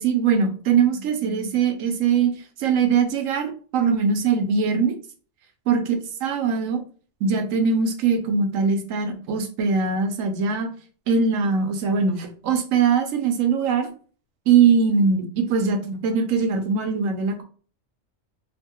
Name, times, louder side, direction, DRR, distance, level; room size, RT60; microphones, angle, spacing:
voice 1, 0.0-2.3 2.6-5.0 5.7-5.8 6.2-6.8 7.2-10.7 11.1-13.9 14.5-17.4, right 5 dB, 85° right, 6 dB, 1.0 m, -21 dB
2.8 x 2.7 x 2.2 m, 0.40 s
omnidirectional pair, 1.3 m